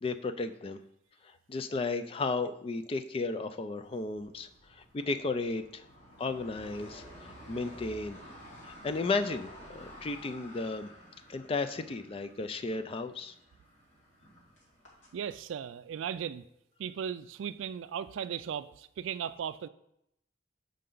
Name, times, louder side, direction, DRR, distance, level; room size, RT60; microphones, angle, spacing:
voice 1, 0.0-0.8 1.5-4.5 4.8-5.8 6.2-7.0 7.5-8.2 8.6-10.9 11.3-13.3, left 3 dB, 30° left, 10 dB, 0.3 m, -34 dB
sound 1, 3.9-15.4, equal, 90° left, 2.1 m, -52 dB
voice 2, 15.1-16.4 16.8-19.7, right 8 dB, 85° right, 14 dB, 0.3 m, -37 dB
6.7 x 5.1 x 3.8 m, 0.78 s
head